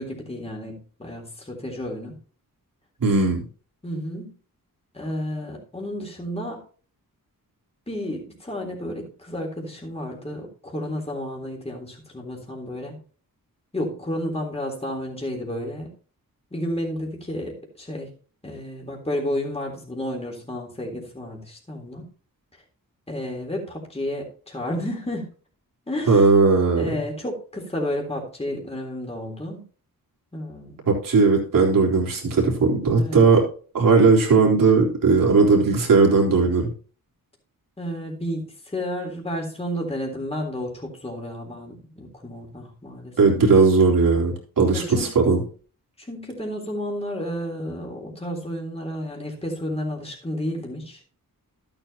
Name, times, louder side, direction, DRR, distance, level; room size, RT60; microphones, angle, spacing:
voice 1, 0.0-2.1 3.8-4.3 4.9-6.6 7.9-12.9 13.7-15.9 16.5-18.1 18.4-22.1 23.1-25.3 25.9-26.3 26.8-29.6 30.3-30.9 33.0-33.2 37.8-43.1 44.7-45.1 46.0-51.0, left 1 dB, 15° left, 0 dB, 3.6 m, -31 dB
voice 2, 3.0-3.4 26.1-26.9 30.9-33.4 33.7-36.7 43.2-45.4, right 4 dB, 70° right, -1 dB, 3.9 m, -18 dB
12.5 x 9.1 x 2.9 m, 0.40 s
cardioid pair, 75°, 34 cm